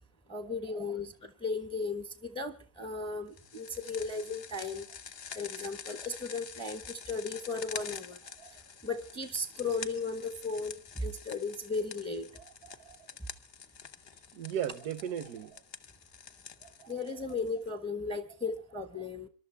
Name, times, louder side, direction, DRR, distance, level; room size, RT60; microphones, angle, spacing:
voice 1, 0.3-4.8 5.3-8.2 8.8-12.3 16.9-19.3, left 3 dB, 5° left, 1.0 m, -36 dB
sound 1, 3.4-17.7, left 7 dB, 45° left, 0.9 m, -47 dB
voice 2, 12.3-13.0 14.3-15.6 16.6-17.2 18.9-19.1, right 9 dB, 80° right, 1.4 m, -39 dB
26.0 x 12.0 x 3.4 m
omnidirectional pair, 1.6 m